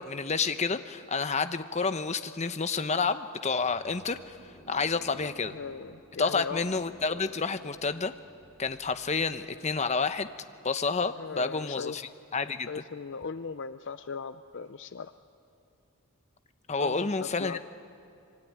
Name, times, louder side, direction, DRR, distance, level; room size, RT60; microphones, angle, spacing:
voice 1, 0.0-4.4 4.7-5.5 6.2-8.1 8.6-10.3 10.6-12.0 12.3-12.8 16.7-17.6, left 4 dB, 30° left, 10 dB, 0.9 m, -29 dB
sound 1, 3.6-10.1, right 1 dB, 5° left, 6.0 m, -57 dB
voice 2, 5.4-6.7 11.2-12.0 12.7-15.1 16.8-17.6, left 5 dB, 55° left, 12 dB, 0.5 m, -38 dB
25.5 x 23.5 x 9.5 m, 2.6 s
head